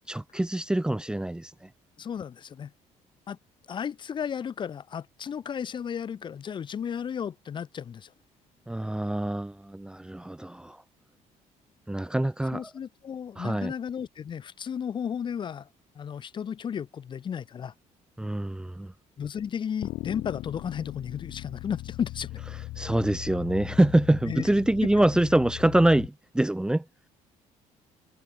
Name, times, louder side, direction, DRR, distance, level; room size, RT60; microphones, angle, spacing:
voice 1, 0.1-1.7 8.7-10.8 11.9-12.7 13.4-13.7 18.2-18.9 22.8-26.8, right 1 dB, 5° right, 1.0 m, -25 dB
voice 2, 2.0-2.7 3.3-3.4 3.7-8.1 12.5-15.7 15.9-17.7 19.2-22.3 24.3-24.4, left 8 dB, 35° left, 1.4 m, -34 dB
sound 1, 19.8-26.1, left 17 dB, 85° left, 6.0 m, -39 dB
cardioid pair, 145°, 14 cm